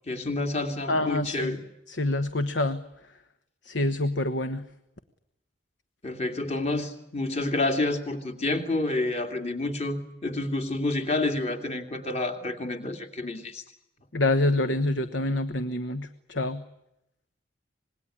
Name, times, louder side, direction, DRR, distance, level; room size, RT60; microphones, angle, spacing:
voice 1, 0.1-1.6 6.0-13.6, left 2 dB, 30° left, 6 dB, 2.7 m, -29 dB
voice 2, 0.9-1.6 1.9-2.8 3.6-4.6 14.1-16.6, left 2 dB, 65° left, 11 dB, 1.2 m, -26 dB
26.0 x 21.0 x 10.0 m, 0.86 s
head